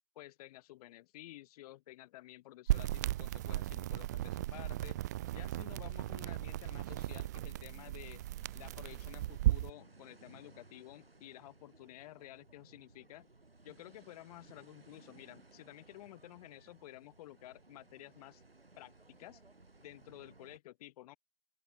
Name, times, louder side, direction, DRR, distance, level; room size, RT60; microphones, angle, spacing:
voice 1, 0.1-5.0 5.3-8.2 8.5-13.3 13.6-18.4 18.8-19.4 19.8-21.2, left 16 dB, 40° left, 1.5 m, -52 dB
sound 1, 2.7-9.7, right 15 dB, 20° right, 0.3 m, -36 dB
sound 2, 4.5-20.6, right 3 dB, 80° right, 6.5 m, -61 dB
open air
figure-of-eight pair, 115°, 29 cm